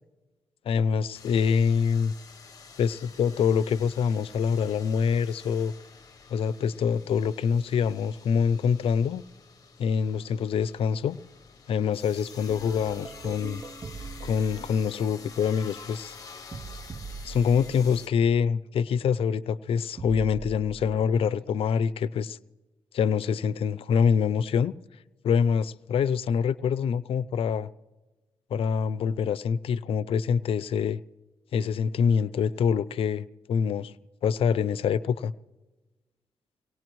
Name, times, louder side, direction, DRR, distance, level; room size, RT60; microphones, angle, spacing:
voice 1, 0.7-2.1 2.8-5.7 6.3-9.2 9.8-11.2 11.7-13.6 14.2-16.1 17.3-22.4 22.9-24.7 25.2-27.7 28.5-31.0 31.5-33.9 34.2-35.3, left 6 dB, 75° left, 0.5 m, -25 dB
sound 1, 1.1-18.1, left 5 dB, 40° left, 0.9 m, -49 dB
sound 2, 12.5-18.3 20.0-21.0, right 4 dB, 30° right, 0.4 m, -42 dB
24.0 x 18.0 x 3.1 m
cardioid pair, 85°, 10 cm